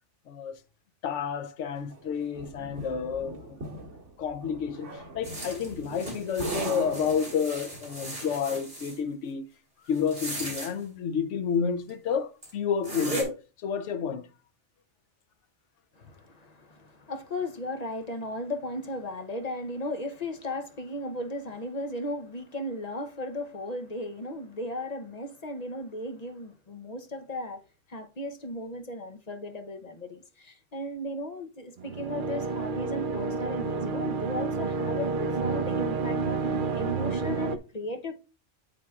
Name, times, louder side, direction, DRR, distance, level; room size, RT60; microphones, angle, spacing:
voice 1, 0.3-0.6 1.0-3.6 4.2-9.5 9.9-14.3, left 7 dB, 75° left, 1.0 m, -30 dB
sound 1, 1.9-7.8, right 3 dB, 75° right, 2.2 m, -40 dB
sound 2, 5.2-9.0 10.0-10.7 11.9-12.0 12.4-12.5 12.8-13.2, right 1 dB, 35° right, 3.5 m, -37 dB
voice 2, 16.0-27.6 27.9-38.1, left 1 dB, 40° left, 0.7 m, -36 dB
sound 3, 31.8-37.6, right 4 dB, 55° right, 0.7 m, -29 dB
8.2 x 7.6 x 2.3 m
omnidirectional pair, 1.2 m